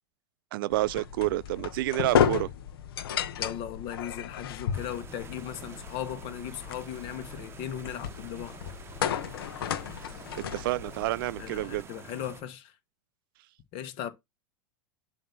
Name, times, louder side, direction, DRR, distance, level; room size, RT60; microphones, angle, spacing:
voice 1, 0.5-2.5 10.0-11.9, right 17 dB, 70° right, 0.4 m, -29 dB
sound 1, 0.7-11.8, left 8 dB, 85° left, 0.8 m, -33 dB
voice 2, 3.4-8.6 11.4-12.8 13.7-14.1, left 10 dB, 50° left, 1.3 m, -37 dB
sound 2, 4.7-12.4, right 5 dB, 20° right, 0.9 m, -48 dB
7.3 x 2.9 x 5.8 m
supercardioid pair, 125°, 12 cm